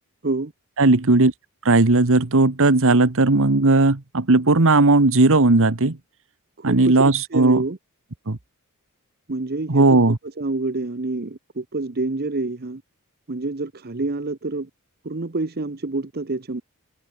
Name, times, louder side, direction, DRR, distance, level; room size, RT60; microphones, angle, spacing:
voice 1, 0.8-1.3 1.6-6.0 6.6-7.6 8.3-8.4 9.7-10.2, right 2 dB, 65° right, 1.4 m, -16 dB
voice 2, 6.6-7.8 9.3-12.8 13.3-14.7 15.0-16.6, right 2 dB, 45° right, 1.0 m, -27 dB
head